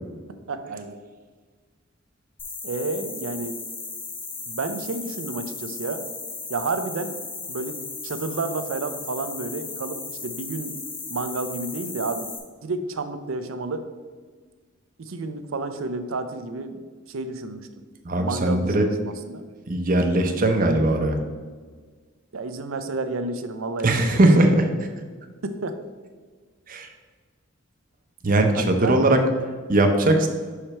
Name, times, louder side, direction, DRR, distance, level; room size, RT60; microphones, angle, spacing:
voice 1, 0.5-1.0 2.6-3.5 4.5-6.0 6.5-7.2 7.5-7.8 8.0-10.8 11.1-12.3 12.6-13.8 15.0-17.7 18.1-19.4 22.3-24.1 24.4-24.5 25.4-25.8 28.5-29.1 30.2-30.3, right 3 dB, 85° right, 8 dB, 0.6 m, -30 dB
sound 1, 2.4-12.4, left 4 dB, 25° left, 0.9 m, -36 dB
voice 2, 18.0-18.9 19.7-21.2 23.8-24.7 26.7-26.9 28.2-29.2 29.7-30.3, right 1 dB, 45° right, 4 dB, 0.7 m, -19 dB
5.8 x 4.9 x 4.3 m, 1.5 s
head